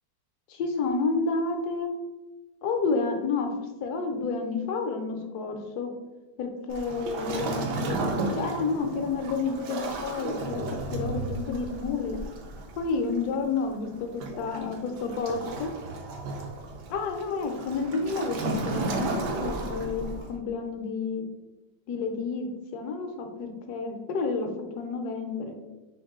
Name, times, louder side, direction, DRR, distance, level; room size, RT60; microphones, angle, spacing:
voice 1, 0.5-1.9 2.6-3.5 3.8-5.9 6.4-8.0 8.3-10.6 10.9-12.2 12.8-15.7 16.9-21.2 21.9-24.5 24.8-25.5, left 4 dB, 70° left, 5 dB, 1.1 m, -30 dB
Waves surf, 6.7-20.4, right 2 dB, 75° right, 1.2 m, -34 dB
3.8 x 3.0 x 3.5 m, 1.1 s
omnidirectional pair, 1.9 m